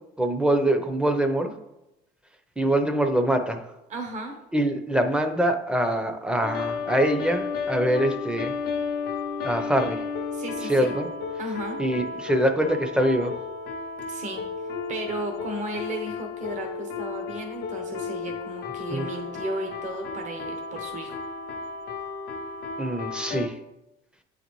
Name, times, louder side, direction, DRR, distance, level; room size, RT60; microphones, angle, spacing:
voice 1, 0.2-1.5 2.6-3.6 4.5-8.5 9.4-10.0 10.7-11.1 11.8-13.3 18.9-19.1 22.8-23.5, right 1 dB, 5° right, 6 dB, 0.6 m, -24 dB
voice 2, 3.9-4.3 10.3-11.0 11.4-11.8 14.1-14.4 14.9-21.2, right 1 dB, 45° right, 3 dB, 0.9 m, -34 dB
sound 1, 6.4-23.5, left 5 dB, 70° left, 0.6 m, -33 dB
7.9 x 4.0 x 3.0 m, 0.93 s
cardioid pair, 110°, 17 cm